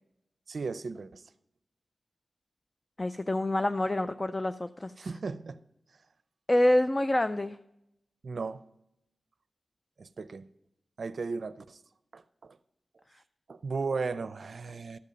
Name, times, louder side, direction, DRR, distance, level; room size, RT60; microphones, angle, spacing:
voice 1, 0.5-1.2 5.0-5.6 8.2-8.6 10.0-10.4 11.0-11.8 12.1-12.6 13.5-15.0, right 4 dB, 65° right, 0.5 m, -35 dB
voice 2, 3.0-4.9 6.5-7.6, left 1 dB, 25° left, 0.3 m, -26 dB
13.0 x 5.4 x 5.2 m
wide cardioid pair, 105°, 0 cm